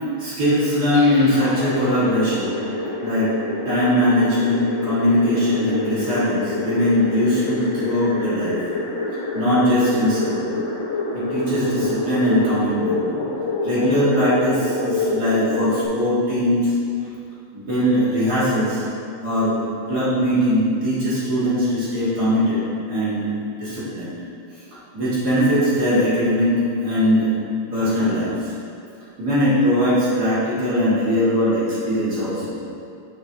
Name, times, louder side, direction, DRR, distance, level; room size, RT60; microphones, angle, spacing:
voice 1, 0.2-2.5 3.0-3.3 3.6-8.6 9.3-10.5 11.1-13.1 13.6-16.7 17.5-18.8 19.2-19.6 19.9-23.3 23.6-24.1 24.9-26.5 26.8-27.3 27.7-28.5 29.2-32.6, equal, 40° right, -11 dB, 1.5 m, -20 dB
sound 1, 0.9-15.9, left 2 dB, 65° left, 1.6 m, -27 dB
7.4 x 6.4 x 2.7 m, 2.4 s
omnidirectional pair, 4.0 m